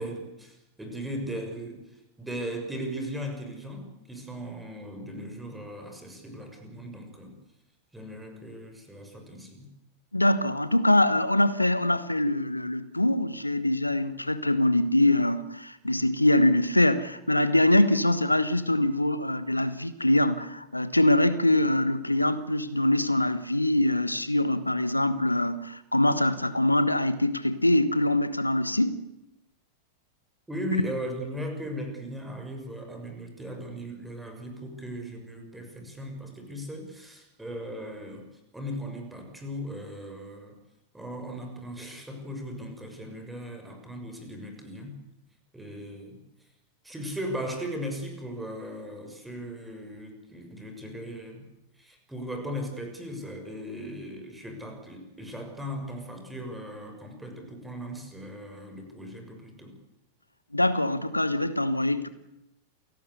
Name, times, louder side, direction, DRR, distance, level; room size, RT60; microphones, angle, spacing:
voice 1, 0.0-7.3 7.9-9.7 30.5-38.3 38.5-40.6 40.9-45.0 45.5-46.2 46.8-51.4 51.8-59.7, equal, 5° right, 4 dB, 6.4 m, -38 dB
voice 2, 10.1-29.0 60.5-62.1, left 1 dB, 85° left, 14 dB, 1.2 m, -24 dB
28.5 x 18.5 x 8.2 m, 0.89 s
figure-of-eight pair, 90°, 0 cm